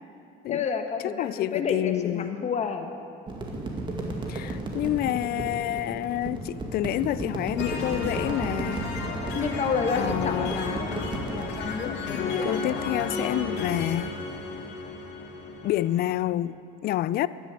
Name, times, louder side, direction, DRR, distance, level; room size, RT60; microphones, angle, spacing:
voice 1, 0.5-2.9 9.3-10.8 11.4-12.9, left 5 dB, 35° left, 6 dB, 1.3 m, -30 dB
voice 2, 1.0-2.4 4.3-8.9 9.9-10.7 12.1-14.2 15.6-17.3, left 13 dB, 55° left, 17 dB, 0.5 m, -28 dB
sound 1, 3.3-11.4, right 2 dB, 25° right, 2.1 m, -34 dB
melody synth, 7.6-16.1, left 3 dB, 75° left, 2.1 m, -33 dB
12.0 x 10.0 x 8.2 m, 2.5 s
cardioid pair, 120°, 19 cm